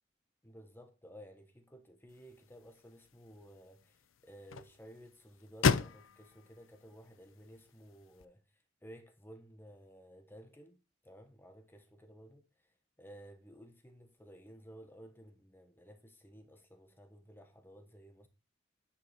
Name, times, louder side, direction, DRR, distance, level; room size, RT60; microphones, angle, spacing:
voice 1, 0.4-8.4 8.8-18.3, equal, 10° left, 1.1 m, -55 dB
sound 1, 2.1-8.2, left 5 dB, 80° left, 0.5 m, -37 dB
9.8 x 5.6 x 4.3 m
head